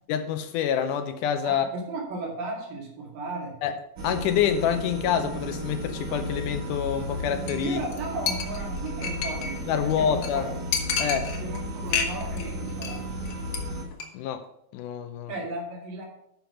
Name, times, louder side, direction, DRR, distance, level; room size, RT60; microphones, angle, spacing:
voice 1, 0.1-1.7 3.6-3.7 4.0-7.8 9.7-10.5 11.0-11.3 14.1-14.4 14.7-15.3, left 8 dB, 80° left, 2.1 m, -27 dB
voice 2, 1.5-3.6 7.6-10.5 11.3-13.0 15.3-16.1, right 2 dB, 85° right, 4.0 m, -35 dB
sound 1, 4.0-13.8, equal, 60° right, 2.8 m, -34 dB
Chink clink, 7.5-7.7 7.9-8.0 8.3-9.6 9.9-10.0 10.2-10.3 10.7-11.6 11.9-12.4 12.7-13.0 13.3-13.6 13.9-14.1, left 6 dB, 60° left, 2.1 m, -29 dB
10.5 x 5.8 x 5.7 m
omnidirectional pair, 3.8 m